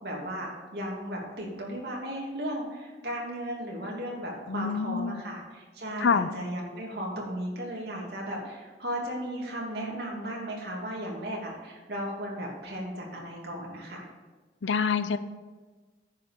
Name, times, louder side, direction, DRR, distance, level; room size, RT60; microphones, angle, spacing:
voice 1, 0.0-14.1, equal, 60° right, -2 dB, 2.8 m, -35 dB
voice 2, 4.5-5.2 6.0-6.3 14.6-15.2, left 5 dB, 85° left, 13 dB, 0.6 m, -26 dB
10.0 x 5.8 x 6.6 m, 1.3 s
head